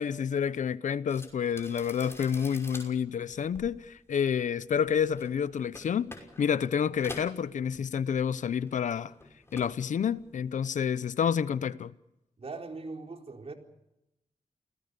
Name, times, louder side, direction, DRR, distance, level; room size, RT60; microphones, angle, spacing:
voice 1, 0.0-9.1 9.5-11.9, left 7 dB, 85° left, 0.8 m, -29 dB
sound 1, 1.1-8.3 8.6-9.8 10.1-10.5, left 1 dB, 20° left, 5.9 m, -47 dB
voice 2, 12.4-13.5, right 3 dB, 55° right, 4.3 m, -40 dB
29.0 x 19.0 x 6.8 m
cardioid pair, 65°, 12 cm